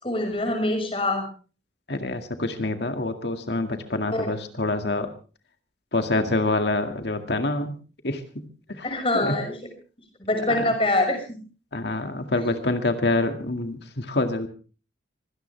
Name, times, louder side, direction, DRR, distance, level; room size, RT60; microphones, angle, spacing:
voice 1, 0.0-1.2 4.1-4.3 8.8-9.5 10.2-11.4 12.4-12.5, left 2 dB, 30° left, 5 dB, 6.1 m, -24 dB
voice 2, 1.9-5.1 5.9-7.7 8.0-8.4 8.7-8.9 9.1-9.3 10.5-10.7 11.7-14.5, left 2 dB, 65° left, 6 dB, 2.1 m, -26 dB
24.5 x 17.5 x 3.4 m, 0.37 s
head